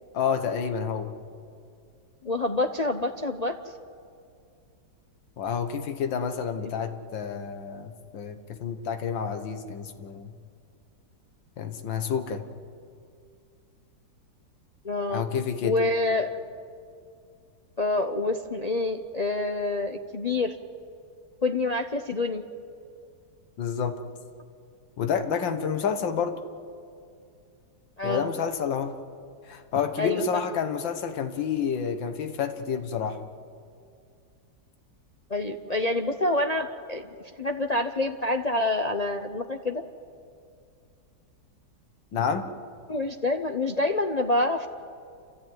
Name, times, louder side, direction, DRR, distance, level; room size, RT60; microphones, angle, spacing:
voice 1, 0.1-1.1 5.4-10.3 11.6-12.4 15.1-15.8 23.6-24.0 25.0-26.4 28.0-29.0 29.4-33.2 42.1-42.4, left 7 dB, 85° left, 7 dB, 2.0 m, -29 dB
voice 2, 2.2-3.5 6.6-6.7 14.8-15.2 15.6-16.4 17.8-20.6 21.4-22.4 28.0-28.3 30.0-30.3 35.3-37.1 37.4-39.8 42.9-44.7, left 2 dB, 70° left, 4 dB, 0.3 m, -27 dB
29.0 x 14.0 x 9.2 m, 2.3 s
omnidirectional pair, 2.0 m